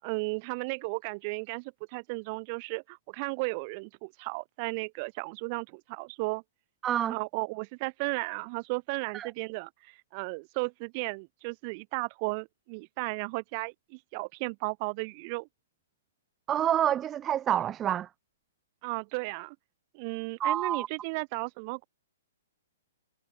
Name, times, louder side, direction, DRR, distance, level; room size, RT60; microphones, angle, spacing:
voice 1, 0.0-6.4 7.1-15.5 18.8-19.6 19.9-21.8, right 31 dB, 40° right, 6.0 m, -35 dB
voice 2, 6.8-7.2 9.1-9.3 16.5-18.1 20.4-20.9, right 10 dB, 20° right, 0.9 m, -27 dB
hypercardioid pair, 130°, 0 cm